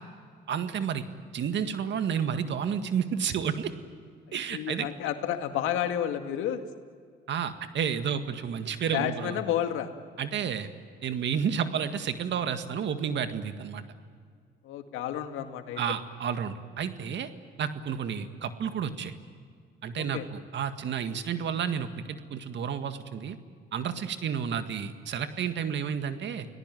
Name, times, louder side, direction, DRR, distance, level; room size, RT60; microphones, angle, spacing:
voice 1, 0.5-1.0 1.3-3.7 4.3-4.9 7.3-9.4 10.2-10.7 11.0-13.8 15.8-17.3 17.6-19.1 19.8-23.4 23.7-26.5, right 7 dB, 65° right, 9 dB, 1.9 m, -31 dB
voice 2, 4.5-6.6 8.9-9.9 14.6-15.8 20.0-20.3, left 10 dB, 85° left, 7 dB, 2.1 m, -31 dB
30.0 x 18.5 x 9.3 m, 2.1 s
supercardioid pair, 70°, 20 cm